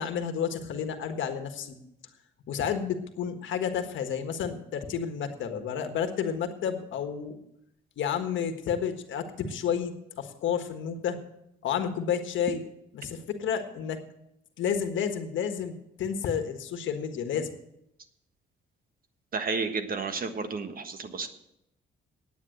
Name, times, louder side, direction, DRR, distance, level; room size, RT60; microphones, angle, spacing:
voice 1, 0.0-1.8 2.5-7.4 8.0-11.2 11.6-12.6 12.9-14.0 14.6-17.5, left 7 dB, 75° left, 7 dB, 1.5 m, -31 dB
voice 2, 19.3-21.3, right 4 dB, 45° right, 8 dB, 1.4 m, -31 dB
9.4 x 9.3 x 7.7 m, 0.80 s
cardioid pair, 90°, 20 cm